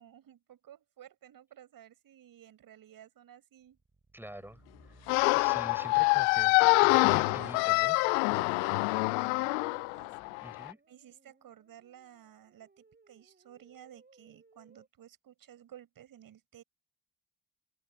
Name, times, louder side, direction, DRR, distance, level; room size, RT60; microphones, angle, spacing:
voice 1, 0.0-3.8 5.8-6.3 7.2-7.5 8.3-10.1 10.9-16.6, right 11 dB, 60° right, 6.4 m, -54 dB
sound 1, 3.6-14.9, right 3 dB, 25° right, 7.3 m, -63 dB
voice 2, 4.1-4.6 5.3-8.0 10.4-10.8, right 1 dB, 5° right, 5.3 m, -45 dB
sound 2, 5.1-10.7, left 35 dB, 75° left, 0.5 m, -26 dB
hypercardioid pair, 45°, 39 cm